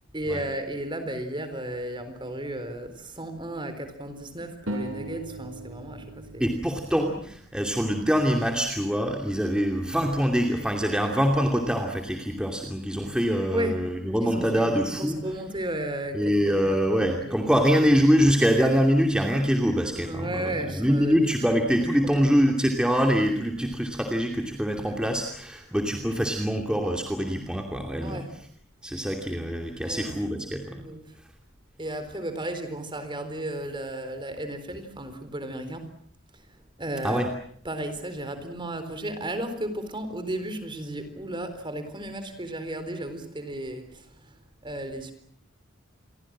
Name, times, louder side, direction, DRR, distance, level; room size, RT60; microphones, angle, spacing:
voice 1, 0.1-6.5 13.5-13.8 14.2-17.7 20.0-21.3 22.0-22.4 28.0-28.4 29.8-30.2 30.7-31.2 31.8-35.9 36.3-37.3 37.6-45.1, right 1 dB, 25° right, 4.1 m, -34 dB
sound 1, 4.7-7.9, right 1 dB, 90° right, 7.5 m, -38 dB
voice 2, 6.4-15.2 16.1-28.2 28.8-30.8 37.0-37.3, equal, 5° right, 2.7 m, -24 dB
29.0 x 23.0 x 7.6 m
head